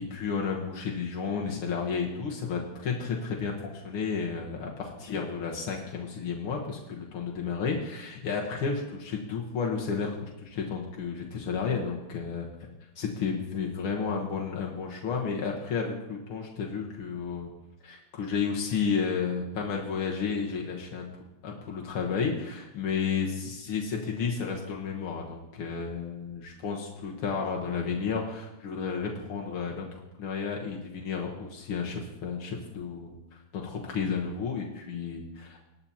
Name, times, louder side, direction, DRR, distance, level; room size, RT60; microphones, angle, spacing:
voice 1, 0.0-12.5 13.0-17.5 17.8-21.1 21.4-35.7, left 5 dB, 80° left, -1 dB, 2.2 m, -32 dB
19.5 x 9.8 x 2.9 m, 0.97 s
omnidirectional pair, 2.4 m